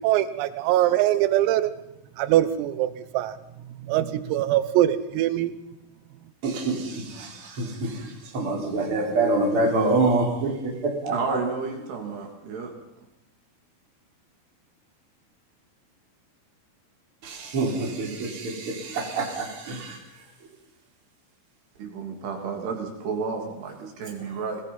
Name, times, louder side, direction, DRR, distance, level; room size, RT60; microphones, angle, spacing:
voice 1, 0.0-1.7 2.2-3.4 3.9-5.5, right 13 dB, 85° right, 13 dB, 3.7 m, -22 dB
voice 2, 6.4-11.1 17.2-20.0, right 2 dB, 25° right, -1 dB, 4.5 m, -26 dB
voice 3, 11.1-12.7 21.8-24.6, right 5 dB, 55° right, 2 dB, 4.7 m, -31 dB
25.0 x 19.5 x 5.6 m, 0.85 s
omnidirectional pair, 6.0 m